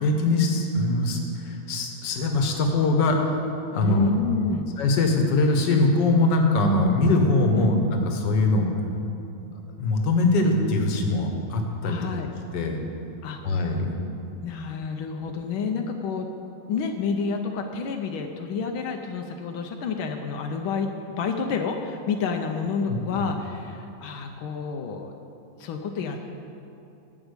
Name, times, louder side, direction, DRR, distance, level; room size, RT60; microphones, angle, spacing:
voice 1, 0.0-3.3 3.7-4.1 4.8-8.7 9.8-12.0 12.5-12.8 13.4-14.0 22.9-23.3, left 2 dB, 65° left, 3 dB, 1.7 m, -22 dB
voice 2, 3.8-4.7 7.5-7.7 11.8-12.3 13.2-13.6 14.4-16.3 16.7-25.1 25.6-26.3, left 5 dB, 90° left, 4 dB, 1.6 m, -29 dB
11.5 x 6.0 x 8.2 m, 2.8 s
omnidirectional pair, 2.2 m